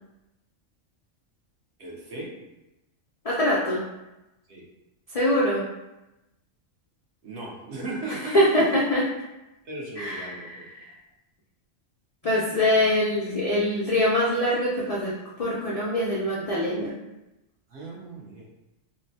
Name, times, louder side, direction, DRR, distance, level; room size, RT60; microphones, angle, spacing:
voice 1, 1.8-2.4 4.5-4.6 7.2-8.6 9.6-10.6 17.7-18.5, right 2 dB, 60° right, -4 dB, 1.0 m, -36 dB
voice 2, 3.2-3.8 5.1-5.6 8.3-9.0 10.0-10.8 12.2-16.9, left 1 dB, 75° left, -6 dB, 0.3 m, -24 dB
3.7 x 2.1 x 2.7 m, 0.96 s
omnidirectional pair, 1.3 m